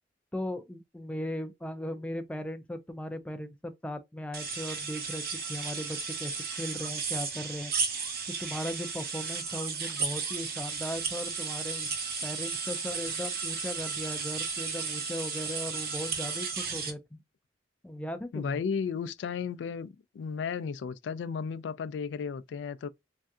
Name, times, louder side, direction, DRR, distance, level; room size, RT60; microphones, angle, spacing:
voice 1, 0.3-6.3 6.6-7.7 8.3-11.9 12.2-17.2 17.8-18.6, left 1 dB, 5° left, 0.3 m, -38 dB
sound 1, 4.3-16.9, right 5 dB, 55° right, 0.8 m, -34 dB
voice 2, 18.3-19.9 20.1-22.9, left 6 dB, 90° left, 0.3 m, -34 dB
3.4 x 2.6 x 2.3 m
head